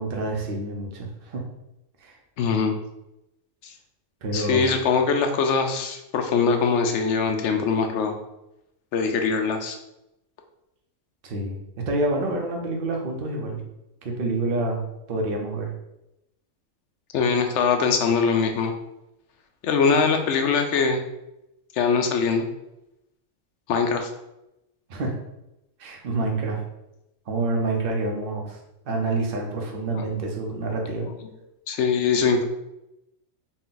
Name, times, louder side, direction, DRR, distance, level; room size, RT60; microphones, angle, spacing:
voice 1, 0.0-1.4 2.0-2.2 4.2-4.7 11.2-13.6 14.0-14.8 15.1-15.7 24.9-25.1 25.8-26.6 27.3-28.6 28.8-31.1, right 2 dB, 50° right, 0 dB, 0.8 m, -27 dB
voice 2, 2.4-2.8 3.6-3.7 4.3-8.2 8.9-9.8 17.1-18.7 19.6-21.0 21.7-22.5 23.7-24.1 29.9-30.0 31.0-31.1 31.7-32.4, left 5 dB, 65° left, 5 dB, 0.8 m, -22 dB
4.1 x 2.3 x 3.8 m, 0.89 s
omnidirectional pair, 1.4 m